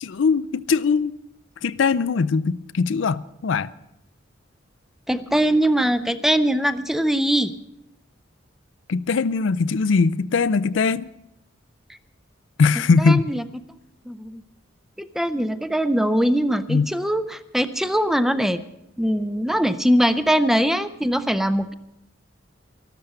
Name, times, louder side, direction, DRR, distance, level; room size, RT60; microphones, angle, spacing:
voice 1, 0.0-1.1 1.6-3.7 8.9-11.1 12.6-13.2 16.7-16.9, left 4 dB, 70° left, 0.4 m, -20 dB
voice 2, 5.1-7.5 13.0-13.4 14.1-14.4 15.0-18.6 19.0-21.7, equal, ahead, 0.5 m, -21 dB
13.0 x 12.5 x 6.7 m
head